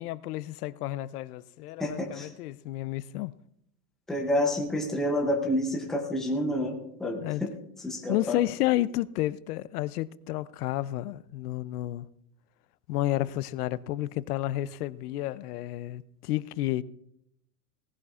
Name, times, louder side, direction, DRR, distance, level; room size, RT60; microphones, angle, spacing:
voice 1, 0.0-3.3 7.2-7.4 8.1-12.1 12.9-16.8, left 15 dB, 75° left, 0.6 m, -31 dB
voice 2, 1.8-2.3 4.1-7.5 7.8-8.4, left 1 dB, ahead, 0.6 m, -29 dB
18.5 x 15.0 x 2.4 m
supercardioid pair, 180°, 47 cm